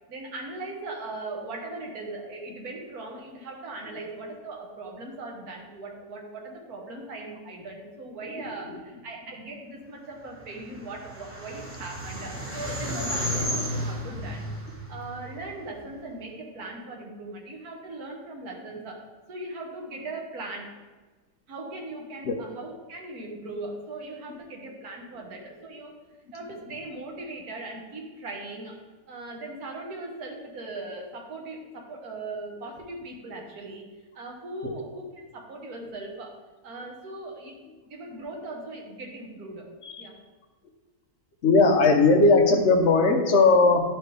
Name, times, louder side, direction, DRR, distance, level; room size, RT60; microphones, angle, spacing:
voice 1, 0.1-14.5 14.9-19.0 19.3-20.7 21.5-25.9 26.3-28.8 29.1-33.8 34.1-36.3 36.6-37.6 37.9-39.7 40.0-40.2, right 2 dB, 70° right, 0 dB, 1.7 m, -39 dB
sound 1, 10.4-15.8, equal, 10° right, 1.0 m, -33 dB
voice 2, 41.4-43.8, left 3 dB, 55° left, 4 dB, 1.0 m, -18 dB
11.0 x 4.6 x 3.3 m, 1.3 s
omnidirectional pair, 1.6 m